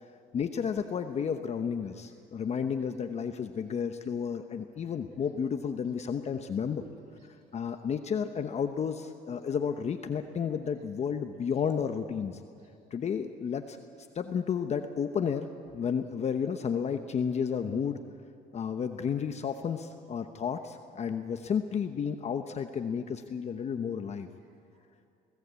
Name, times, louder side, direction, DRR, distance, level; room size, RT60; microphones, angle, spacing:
voice 1, 0.3-6.8 7.5-12.4 12.9-13.8 14.1-15.5 15.7-18.0 18.5-24.3, left 7 dB, 40° left, 7 dB, 0.9 m, -32 dB
voice 2, 6.8-7.8 10.2-10.4 12.6-12.7 13.9-14.1 23.7-23.9 24.4-25.1, right 5 dB, 85° right, 0 dB, 2.4 m, -58 dB
26.5 x 17.0 x 8.3 m, 2.5 s
cardioid pair, 110°, 17 cm